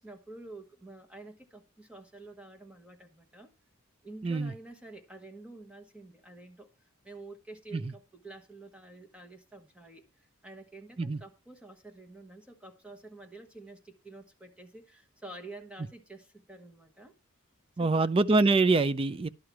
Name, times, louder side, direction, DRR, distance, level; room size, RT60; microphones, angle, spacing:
voice 1, 0.0-3.5 4.0-17.1 17.8-18.1, right 2 dB, 5° right, 1.1 m, -49 dB
voice 2, 4.2-4.5 7.7-7.9 11.0-11.2 17.8-19.3, right 3 dB, 25° right, 0.4 m, -25 dB
11.5 x 4.7 x 6.0 m
head